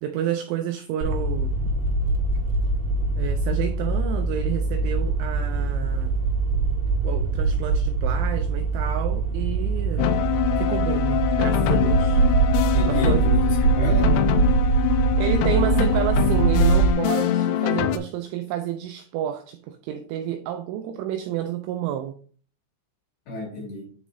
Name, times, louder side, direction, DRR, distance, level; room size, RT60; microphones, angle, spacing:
voice 1, 0.0-1.5 3.2-6.1 7.0-10.1 10.6-12.2 12.9-13.3 15.2-22.2, right 10 dB, 85° right, 2.7 m, -30 dB
sound 1, 1.0-16.9, right 4 dB, 65° right, 3.5 m, -23 dB
sound 2, 10.0-18.0, left 12 dB, 85° left, 2.6 m, -24 dB
voice 2, 12.7-14.3 23.3-23.9, equal, 60° left, 5.8 m, -31 dB
9.9 x 4.9 x 2.7 m
omnidirectional pair, 6.0 m